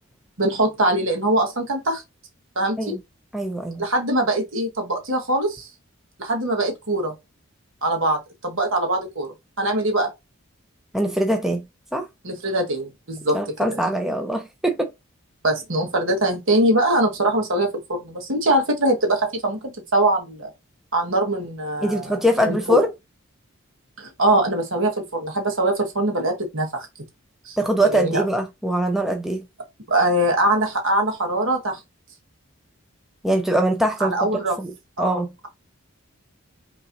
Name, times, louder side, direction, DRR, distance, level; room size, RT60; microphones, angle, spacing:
voice 1, 0.4-2.0 2.5-2.9 3.8-5.7 6.2-7.1 7.8-10.1 12.2-13.4 13.7-13.8 15.4-20.5 20.9-22.2 22.4-22.8 24.0-26.9 27.4-27.6 27.9-28.2 29.9-31.8 34.0-34.6 35.0-35.5, right 1 dB, 65° right, 1.4 m, -22 dB
voice 2, 3.3-3.8 10.9-11.6 11.9-12.1 13.3-14.9 21.8-22.9 27.6-29.4 33.2-34.2 34.6-34.7 35.0-35.3, right 1 dB, ahead, 0.5 m, -22 dB
5.5 x 3.0 x 2.6 m
head